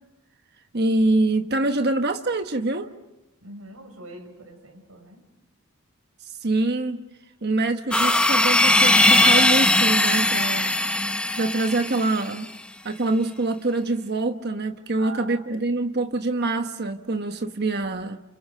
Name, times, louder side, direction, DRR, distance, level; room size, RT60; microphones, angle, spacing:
voice 1, 0.7-2.9 6.2-7.0 7.4-10.7 11.3-12.5 12.8-18.2, right 2 dB, 50° right, 7 dB, 1.3 m, -25 dB
voice 2, 3.4-5.2 15.0-15.4, right 2 dB, 85° right, 4 dB, 7.2 m, -42 dB
sound 1, 7.9-12.3, left 1 dB, 5° left, 1.0 m, -19 dB
29.5 x 28.5 x 6.5 m, 0.95 s
head